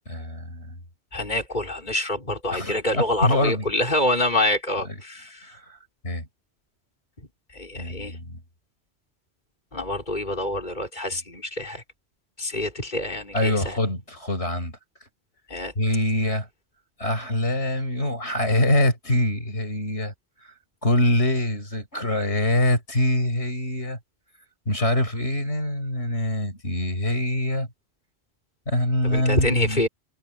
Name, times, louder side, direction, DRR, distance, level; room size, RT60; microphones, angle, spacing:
voice 1, 0.1-0.8 2.5-3.7 5.4-5.8 6.0-6.3 7.7-8.4 13.3-14.8 15.8-16.5 17.0-20.1 20.4-20.5 20.8-24.0 24.7-27.7 28.7-29.9, left 1 dB, 80° left, 6.9 m, -24 dB
voice 2, 1.1-5.5 7.5-8.2 9.7-11.8 12.4-13.8 15.5-15.7 29.0-29.9, left 1 dB, 45° left, 5.2 m, -26 dB
omnidirectional pair, 1.1 m